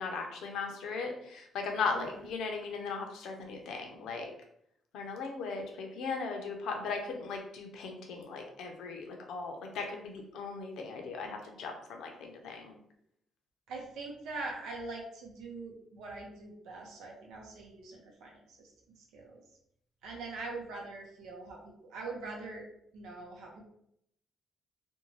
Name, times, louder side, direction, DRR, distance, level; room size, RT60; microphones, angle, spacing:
voice 1, 0.0-4.3 4.9-12.8, left 4 dB, 80° left, 3 dB, 0.6 m, -38 dB
voice 2, 1.9-2.3 13.7-19.4 20.0-22.7 22.9-23.6, right 3 dB, 90° right, -1 dB, 0.6 m, -43 dB
2.6 x 2.2 x 3.0 m, 0.72 s
cardioid pair, 90°, 0 cm